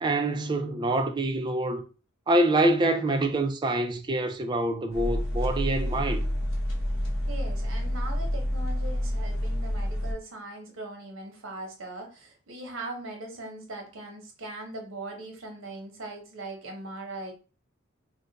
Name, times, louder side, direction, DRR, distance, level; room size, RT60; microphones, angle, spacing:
voice 1, 0.0-1.8 2.3-6.2, right 1 dB, 20° right, 0.3 m, -25 dB
sound 1, 4.9-10.1, equal, 85° left, 0.8 m, -28 dB
voice 2, 7.3-17.3, right 2 dB, 80° right, 0.9 m, -40 dB
2.4 x 2.2 x 3.9 m
head